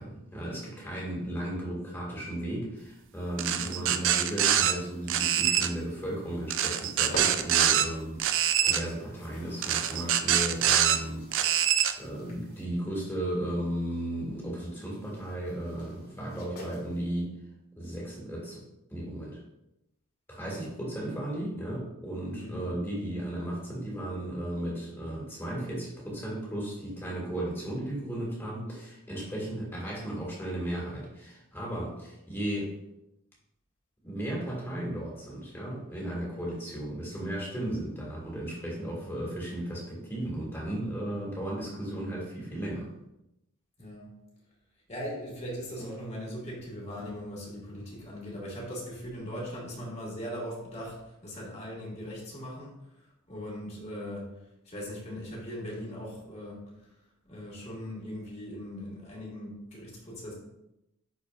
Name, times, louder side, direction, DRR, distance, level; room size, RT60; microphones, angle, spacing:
voice 1, 0.0-11.5 12.0-17.4 17.8-19.4 20.3-32.8 34.0-42.9, right 1 dB, 10° left, -4 dB, 2.1 m, -35 dB
sound 1, 3.4-4.7 5.1-5.7 6.5-7.9 8.2-8.8 9.6-11.0 11.3-11.9, right 10 dB, 60° right, 0.4 m, -24 dB
sound 2, 6.3-17.0, equal, 85° left, 2.5 m, -47 dB
voice 2, 22.3-22.7 43.8-44.1 44.9-52.8 53.3-54.3 54.7-56.6 57.2-60.3, equal, 30° left, -5 dB, 2.2 m, -39 dB
10.0 x 4.5 x 2.6 m, 0.87 s
head